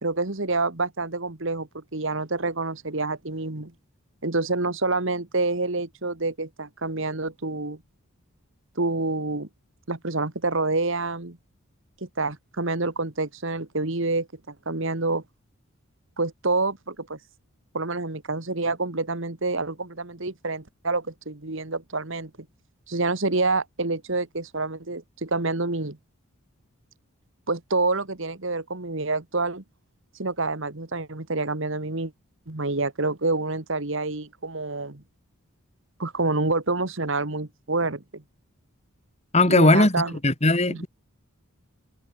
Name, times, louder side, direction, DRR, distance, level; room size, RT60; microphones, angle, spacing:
voice 1, 0.0-3.7 4.2-7.8 8.7-9.5 9.9-11.4 12.0-15.2 16.2-17.2 17.7-22.3 22.9-26.0 27.5-29.6 30.2-32.1 32.5-35.0 36.0-38.2 39.5-40.2 40.7-40.9, right 3 dB, 60° right, 1.8 m, -27 dB
voice 2, 39.3-40.9, left 2 dB, 30° left, 2.5 m, -19 dB
head